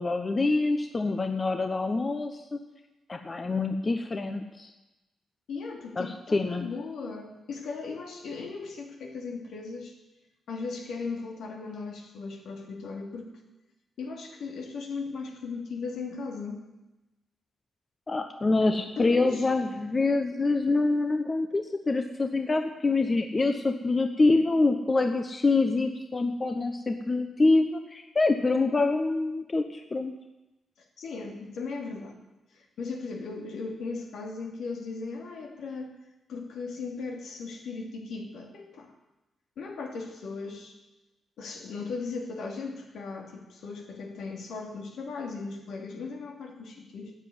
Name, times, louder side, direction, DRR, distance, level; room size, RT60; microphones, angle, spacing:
voice 1, 0.0-2.6 3.1-4.7 6.0-6.7 18.1-30.1, left 3 dB, 30° left, 6 dB, 1.1 m, -26 dB
voice 2, 5.5-9.9 10.5-13.3 14.0-16.6 19.0-19.5 31.0-32.1 32.5-35.9 36.3-38.9 39.6-40.8 41.4-47.1, left 4 dB, 80° left, 1 dB, 2.8 m, -37 dB
12.5 x 8.0 x 9.5 m, 1.0 s
cardioid pair, 75°, 0 cm